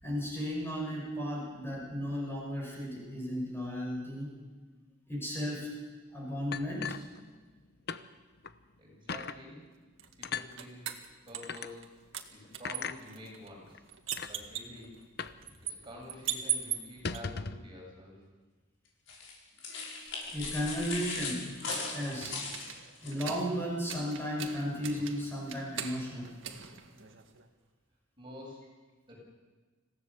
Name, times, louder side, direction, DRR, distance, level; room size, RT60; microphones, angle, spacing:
voice 1, 0.0-4.3 5.1-5.7 6.1-7.0 20.3-21.6 21.9-22.5 23.0-26.3, equal, 10° left, -3 dB, 6.0 m, -35 dB
sound 1, 6.5-7.6 7.9-8.0 8.4-8.6 9.1-9.4 10.2-10.5 11.4-11.7 12.6-13.0 13.7-13.8 14.1-14.3 15.2-15.4 15.7-15.8 16.1-16.3 16.9-17.7, left 6 dB, 55° left, 0.9 m, -38 dB
voice 2, 8.8-9.6 10.2-10.8 11.3-11.8 12.3-13.8 14.2-14.9 15.7-18.2 22.7-22.8 26.9-27.0 28.2-28.6 29.1-29.2, left 1 dB, 25° right, -2 dB, 8.0 m, -48 dB
sound 2, 10.0-11.9 12.1-17.2 20.0-27.5, right 9 dB, 80° right, 1.9 m, -41 dB
sound 3, 19.1-23.2, left 4 dB, 80° left, 6.7 m, -39 dB
26.5 x 16.5 x 7.1 m, 1.4 s
head